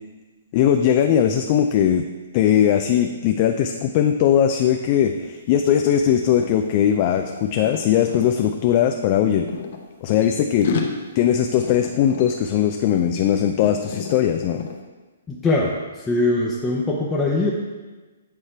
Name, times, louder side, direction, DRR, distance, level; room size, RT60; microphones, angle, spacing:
voice 1, 0.5-2.0 2.3-9.5 10.0-10.7 11.2-14.7, left 9 dB, 40° left, 5 dB, 0.4 m, -19 dB
sound 1, 5.0-5.2 5.4-8.3 9.1-10.3 10.6-13.2 13.4-14.1 14.6-14.8, left 5 dB, 60° left, 0.9 m, -31 dB
voice 2, 15.3-15.8 16.1-17.5, left 2 dB, 10° left, -5 dB, 0.7 m, -21 dB
8.6 x 3.2 x 4.4 m, 1.2 s
hypercardioid pair, 135°, 0 cm